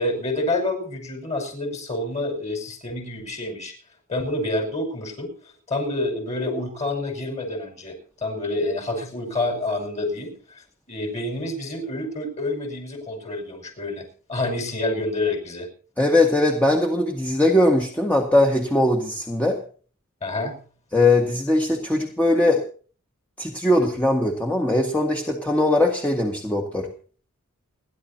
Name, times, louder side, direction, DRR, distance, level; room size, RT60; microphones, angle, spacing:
voice 1, 0.0-3.7 4.1-5.3 5.7-8.0 8.2-10.3 10.9-15.7 20.2-20.5, left 2 dB, 30° left, 4 dB, 5.6 m, -28 dB
voice 2, 16.0-19.6 20.9-22.6 23.4-26.9, left 1 dB, 5° left, 1 dB, 1.6 m, -20 dB
29.5 x 11.0 x 2.8 m, 0.42 s
head